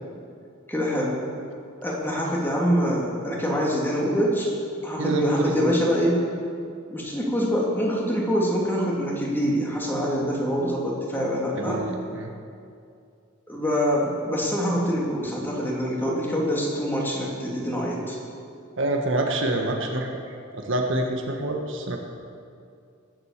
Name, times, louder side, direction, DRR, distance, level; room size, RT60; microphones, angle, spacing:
voice 1, 0.7-1.2 1.8-4.5 4.8-6.2 6.9-11.8 13.5-18.2, equal, 10° left, -3 dB, 2.7 m, -25 dB
voice 2, 5.0-5.7 11.5-12.3 18.8-20.1 20.5-22.0, right 1 dB, 65° right, 2 dB, 1.5 m, -26 dB
19.5 x 8.0 x 7.4 m, 2.4 s
head